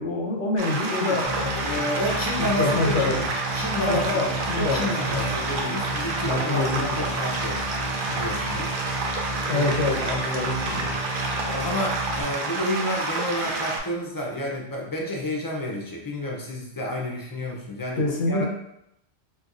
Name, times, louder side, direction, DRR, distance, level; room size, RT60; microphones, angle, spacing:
voice 1, 0.0-1.8 2.6-3.3 3.8-5.3 6.3-7.1 9.5-11.0 18.0-18.4, left 2 dB, 90° left, 0 dB, 1.0 m, -26 dB
sound 1, 0.6-13.8, right 3 dB, 60° right, 0.6 m, -29 dB
sound 2, 1.2-12.2, right 1 dB, 40° right, 1.2 m, -33 dB
voice 2, 1.6-3.2 3.5-4.1 4.5-7.6 8.1-8.8 9.5-9.7 11.5-18.4, left 1 dB, 30° left, -1 dB, 0.4 m, -30 dB
4.3 x 2.3 x 2.4 m, 0.80 s
omnidirectional pair, 1.1 m